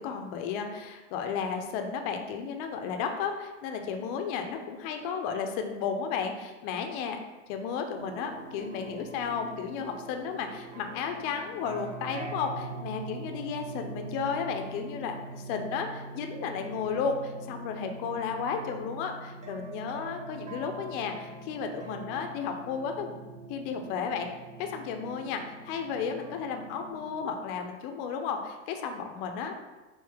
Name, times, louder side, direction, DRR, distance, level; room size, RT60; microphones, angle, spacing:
voice 1, 0.0-7.2 7.5-23.1 23.5-24.3 24.6-29.5, left 6 dB, 45° left, 5 dB, 0.6 m, -33 dB
sound 1, 7.9-27.3, right 2 dB, 20° right, 0.4 m, -43 dB
4.7 x 2.7 x 3.4 m, 1.2 s
supercardioid pair, 130°, 38 cm